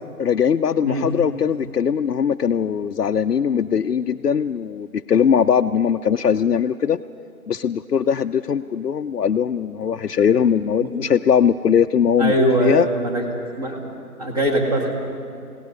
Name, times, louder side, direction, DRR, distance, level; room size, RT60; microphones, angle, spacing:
voice 1, 0.2-7.0 7.5-12.3 12.6-12.9, left 7 dB, 90° left, 7 dB, 0.6 m, -20 dB
voice 2, 12.2-13.3 13.5-13.8 14.2-15.0, right 1 dB, 25° right, 0 dB, 2.3 m, -21 dB
29.5 x 17.5 x 5.4 m, 2.5 s
figure-of-eight pair, 155°, 46 cm